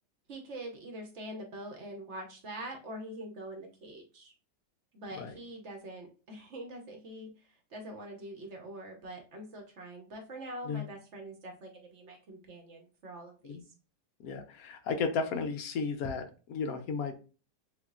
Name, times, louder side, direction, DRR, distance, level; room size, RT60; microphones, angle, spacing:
voice 1, 0.3-4.3 4.9-7.3 7.7-13.6, right 1 dB, 50° right, 1.0 m, -44 dB
voice 2, 14.2-17.1, left 4 dB, 65° left, 0.9 m, -34 dB
6.9 x 2.4 x 2.4 m
omnidirectional pair, 1.9 m